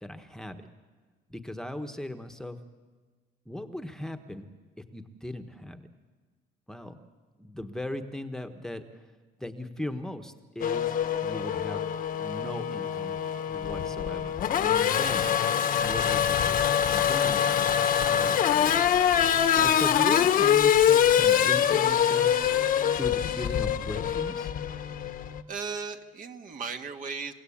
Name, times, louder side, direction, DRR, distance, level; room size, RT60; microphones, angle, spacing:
voice 1, 0.0-0.6 1.3-2.6 3.5-4.5 4.9-5.9 6.7-7.0 7.4-9.0 9.4-11.0 11.2-11.9 12.2-13.2 13.4-15.3 15.8-16.6 16.9-17.5 17.9-22.4 23.0-24.5, left 1 dB, 5° left, 7 dB, 1.3 m, -38 dB
Race car auto racing / Accelerating revving vroom, 10.6-25.4, left 9 dB, 55° left, 1.3 m, -24 dB
voice 2, 25.5-27.3, right 5 dB, 50° right, 5 dB, 1.9 m, -36 dB
30.0 x 16.5 x 8.7 m, 1.4 s
cardioid pair, 110°, 17 cm